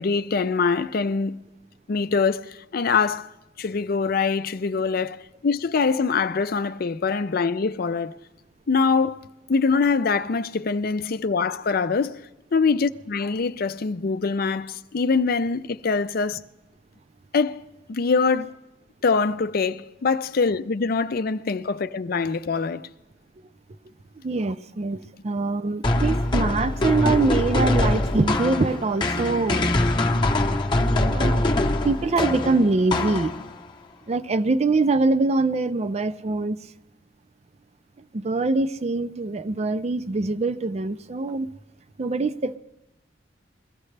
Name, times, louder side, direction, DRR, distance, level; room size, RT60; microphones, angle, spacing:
voice 1, 0.0-1.4 1.9-3.3 3.6-8.1 8.7-9.2 9.5-12.2 12.5-16.4 17.3-17.6 17.9-18.5 19.0-22.9, left 4 dB, 55° left, 0.5 m, -24 dB
voice 2, 24.2-29.7 30.8-33.3 34.1-36.6 38.1-41.5 42.0-42.6, right 3 dB, 35° right, 0.5 m, -24 dB
sound 1, 25.8-33.7, left 1 dB, 25° left, 0.8 m, -23 dB
22.0 x 15.0 x 3.3 m
head